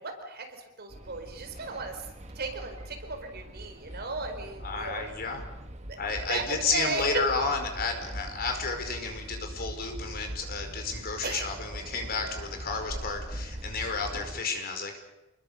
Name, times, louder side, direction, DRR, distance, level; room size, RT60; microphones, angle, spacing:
voice 1, 0.0-2.1 2.3-5.0 5.9-6.0 6.3-7.2 11.2-11.5, right 3 dB, 50° right, 5 dB, 4.3 m, -35 dB
sound 1, 0.9-14.4, right 1 dB, 30° right, 1.7 m, -41 dB
voice 2, 4.6-5.4 6.0-15.0, left 4 dB, 45° left, 5 dB, 4.8 m, -31 dB
28.0 x 21.5 x 6.6 m, 0.98 s
head